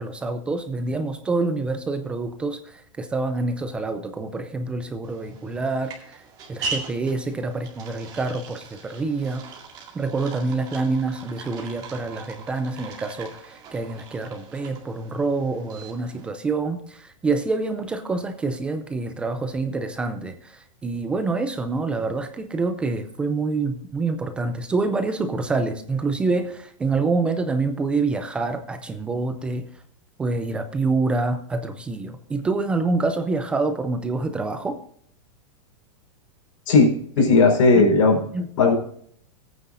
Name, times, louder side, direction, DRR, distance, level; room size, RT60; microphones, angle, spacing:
voice 1, 0.0-9.4 9.9-29.7 30.2-34.8 37.8-37.9 38.3-38.7, right 3 dB, 5° right, 8 dB, 0.3 m, -26 dB
sound 1, 5.0-16.3, right 4 dB, 25° right, 2.2 m, -40 dB
voice 2, 36.7-38.2 38.6-38.7, left 3 dB, 85° left, 1 dB, 4.5 m, -16 dB
18.0 x 9.2 x 2.5 m, 0.63 s
supercardioid pair, 175°, 16 cm